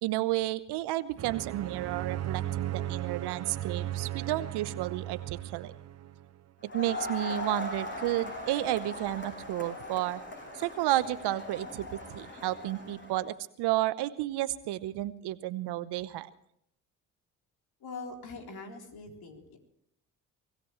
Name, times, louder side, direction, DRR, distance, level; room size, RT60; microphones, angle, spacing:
voice 1, 0.0-5.7 6.6-10.2 10.5-16.3, right 15 dB, 65° right, 15 dB, 1.0 m, -32 dB
sound 1, 1.2-6.3, right 12 dB, 35° right, 0.8 m, -36 dB
Crowd, 6.6-13.2, left 2 dB, 25° left, 7.7 m, -39 dB
voice 2, 17.8-19.6, left 3 dB, 55° left, 2 dB, 3.9 m, -43 dB
24.0 x 17.0 x 3.2 m, 0.72 s
hypercardioid pair, 55°, 43 cm